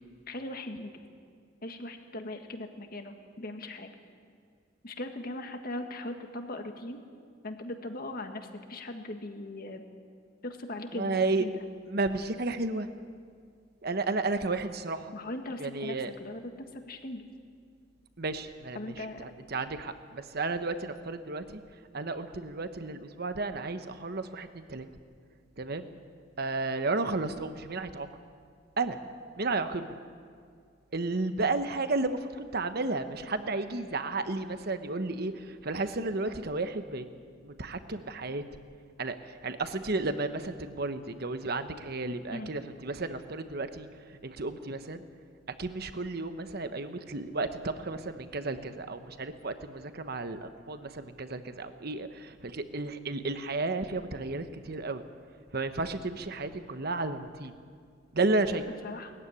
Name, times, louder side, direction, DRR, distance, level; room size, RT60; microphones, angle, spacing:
voice 1, 0.3-1.0 1.6-3.9 4.8-7.0 7.4-9.8 10.4-11.6 15.1-17.3 18.8-19.3 42.3-42.5 58.8-59.1, left 1 dB, 50° left, 5 dB, 1.7 m, -39 dB
voice 2, 11.0-11.4 11.9-12.9 13.8-15.1 15.6-16.1 18.2-21.6 21.9-24.9 25.6-25.9 26.4-28.1 28.8-29.0 29.4-30.0 30.9-37.1 37.4-38.4 39.0-43.9 44.2-45.0 45.6-55.0 55.5-57.5 58.1-58.6, right 3 dB, 55° right, 10 dB, 1.1 m, -32 dB
20.0 x 15.0 x 9.9 m, 2.1 s
head